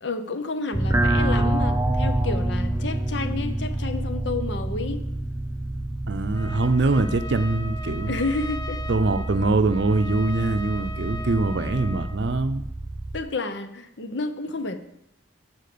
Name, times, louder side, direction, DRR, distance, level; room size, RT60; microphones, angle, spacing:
voice 1, 0.0-5.0 8.1-8.8 13.1-14.8, left 3 dB, 65° left, 0.8 m, -30 dB
sound 1, 0.7-13.2, right 1 dB, 15° right, 0.6 m, -27 dB
voice 2, 6.1-8.2 8.9-12.6, right 3 dB, 60° right, 0.6 m, -23 dB
Trumpet, 6.3-12.2, left 1 dB, 20° left, 0.3 m, -39 dB
12.0 x 4.6 x 6.7 m
head